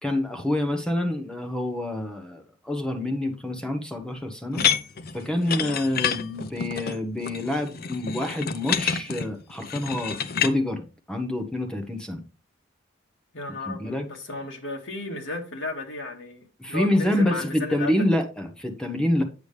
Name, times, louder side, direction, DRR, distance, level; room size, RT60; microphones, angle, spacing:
voice 1, 0.0-4.7 5.1-12.2 13.7-14.1 16.6-19.2, left 1 dB, 5° left, 0.9 m, -27 dB
sound 1, 4.5-10.5, left 7 dB, 50° left, 0.6 m, -28 dB
voice 2, 13.3-17.9, left 2 dB, 65° left, 2.1 m, -34 dB
8.2 x 6.9 x 3.3 m
head